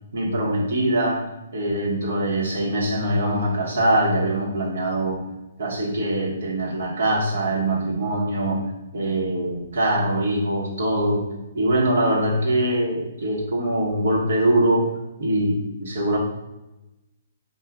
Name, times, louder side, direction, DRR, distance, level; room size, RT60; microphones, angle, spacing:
voice 1, 0.1-1.3 1.5-5.2 5.6-8.6 8.9-11.2 11.5-14.9 15.2-16.2, right 1 dB, 65° right, -3 dB, 1.2 m, -23 dB
4.6 x 2.4 x 3.6 m, 0.99 s
figure-of-eight pair, 125°, 0 cm